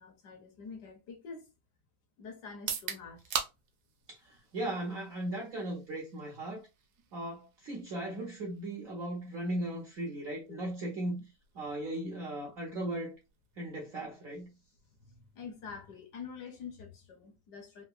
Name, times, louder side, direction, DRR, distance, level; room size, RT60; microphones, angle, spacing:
voice 1, 0.0-1.5 2.2-3.4 10.5-10.6 15.0-17.8, left 5 dB, 65° left, 1.2 m, -46 dB
sound 1, 2.5-16.4, right 8 dB, 80° right, 1.4 m, -46 dB
voice 2, 4.1-6.6 7.1-11.2 11.5-13.1 13.6-14.5, right 1 dB, 65° right, 0.8 m, -37 dB
3.7 x 2.5 x 2.4 m
omnidirectional pair, 2.1 m